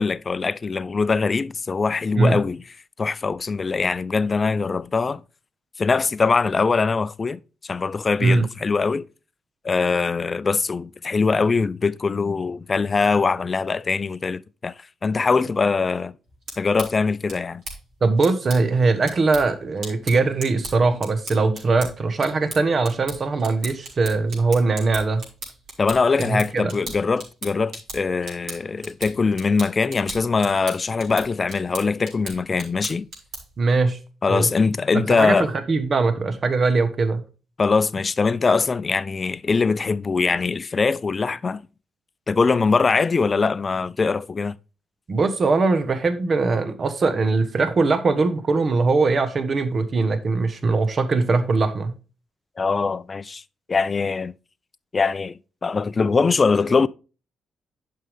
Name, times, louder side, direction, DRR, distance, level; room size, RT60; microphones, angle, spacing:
voice 1, 0.0-2.6 3.0-5.2 5.8-9.1 9.6-14.7 15.0-16.1 16.6-17.6 25.8-33.1 34.2-35.5 37.6-41.6 42.3-44.5 52.6-53.4 53.7-54.3 54.9-56.9, left 4 dB, 40° left, 0.5 m, -22 dB
sound 1, 16.3-33.6, right 2 dB, 65° right, 3.9 m, -39 dB
voice 2, 18.0-25.2 26.2-26.7 33.6-34.0 34.3-34.5 34.9-35.4 35.7-37.2 45.1-51.9, right 3 dB, 45° right, 1.2 m, -21 dB
10.5 x 5.6 x 3.5 m
hypercardioid pair, 40°, 0 cm